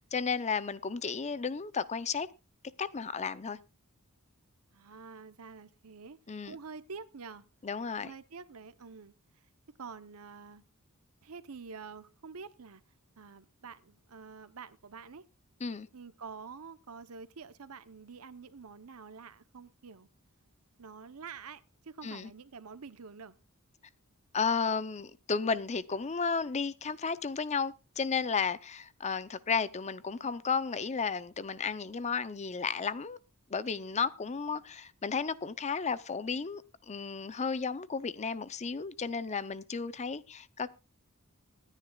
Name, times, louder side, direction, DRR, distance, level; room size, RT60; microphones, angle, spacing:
voice 1, 0.0-2.3 2.8-3.6 6.3-6.5 7.6-8.1 15.6-15.9 22.0-22.3 24.3-33.2 33.5-40.7, left 5 dB, 30° left, 0.6 m, -33 dB
voice 2, 4.7-6.2 6.4-7.4 8.0-9.5 9.8-10.6 11.2-12.8 13.2-15.2 15.9-20.1 20.8-23.4, right 5 dB, 70° right, 0.8 m, -47 dB
25.0 x 9.9 x 2.3 m
head